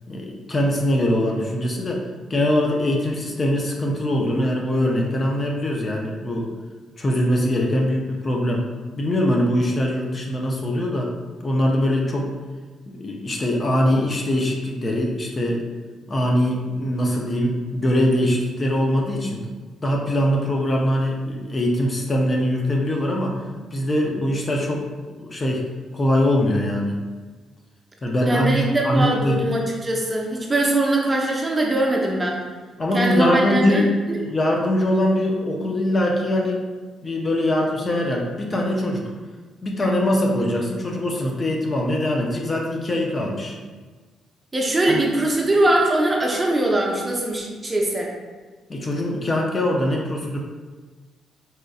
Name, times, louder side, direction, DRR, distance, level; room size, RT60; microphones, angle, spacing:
voice 1, 0.1-2.0 2.3-6.5 7.0-8.7 9.0-11.1 11.4-12.3 12.9-15.6 16.1-19.5 19.8-23.4 23.7-25.7 25.9-27.0 28.0-29.4 32.8-33.9 34.3-36.6 37.0-39.1 39.6-43.6 44.9-45.0 48.7-50.4, left 1 dB, 35° left, 0 dB, 0.5 m, -22 dB
voice 2, 28.3-32.4 32.9-34.2 44.5-48.1, right 1 dB, 20° right, -1 dB, 0.6 m, -21 dB
4.2 x 2.5 x 2.3 m, 1.3 s
cardioid pair, 90°, 0 cm